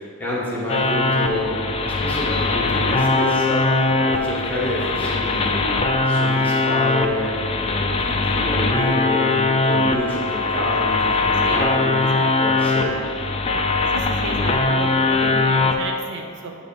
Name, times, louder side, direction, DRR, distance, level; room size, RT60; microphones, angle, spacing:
voice 1, 0.0-5.6 6.0-7.3 7.6-12.0 12.4-12.9, left 1 dB, 5° left, -7 dB, 1.5 m, -28 dB
sound 1, 0.7-15.7, left 3 dB, 25° left, 0.4 m, -21 dB
voice 2, 13.9-16.6, right 3 dB, 55° right, 2 dB, 0.5 m, -32 dB
7.8 x 2.9 x 5.3 m, 2.4 s
head